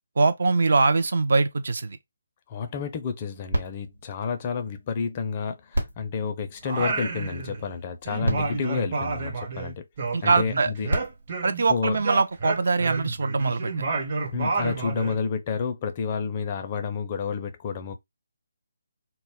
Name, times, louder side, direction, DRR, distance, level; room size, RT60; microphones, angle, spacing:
voice 1, 0.2-2.0 10.1-10.7 11.4-13.7, right 3 dB, 60° right, 0.4 m, -22 dB
voice 2, 2.5-9.8 10.2-10.9 11.7-12.0 14.3-17.9, left 6 dB, 30° left, 0.4 m, -30 dB
sound 1, 3.5-5.1 5.7-7.3 7.9-8.0 8.2-9.8 10.6-12.5 13.2-13.3, right 1 dB, 90° right, 1.1 m, -34 dB
Singing, 6.6-7.8 8.1-11.7 12.0-15.2, right 4 dB, 40° right, 0.7 m, -30 dB
2.2 x 2.0 x 3.5 m
figure-of-eight pair, 145°, 0 cm